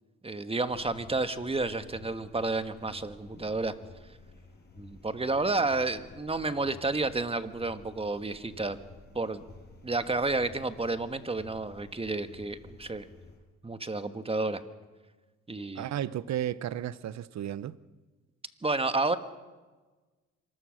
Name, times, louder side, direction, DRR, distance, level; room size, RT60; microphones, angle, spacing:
voice 1, 0.2-3.7 4.8-8.8 9.1-9.4 9.8-13.0 13.6-14.6 15.5-15.9 18.6-19.2, right 3 dB, 20° right, 1.5 m, -31 dB
sound 1, 0.7-13.4, left 3 dB, 35° left, 6.8 m, -52 dB
voice 2, 15.8-17.8, right 11 dB, 65° right, 0.8 m, -33 dB
25.5 x 20.5 x 6.5 m
cardioid pair, 90°, 30 cm